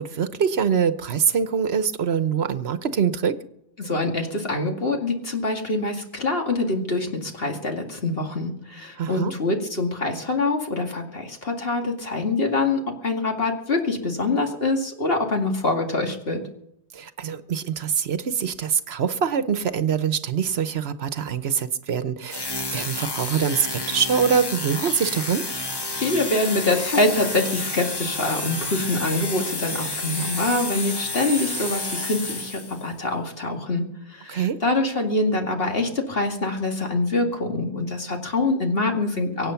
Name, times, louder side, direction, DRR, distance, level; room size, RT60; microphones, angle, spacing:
voice 1, 0.0-3.4 9.0-9.3 16.9-25.5 34.3-34.6, right 7 dB, 70° right, 12 dB, 1.1 m, -24 dB
voice 2, 3.8-16.4 25.9-33.8 34.1-39.5, left 2 dB, 60° left, 3 dB, 2.5 m, -25 dB
sound 1, 22.3-32.9, left 2 dB, 20° left, 1.2 m, -30 dB
24.0 x 8.8 x 5.8 m, 0.78 s
omnidirectional pair, 1.1 m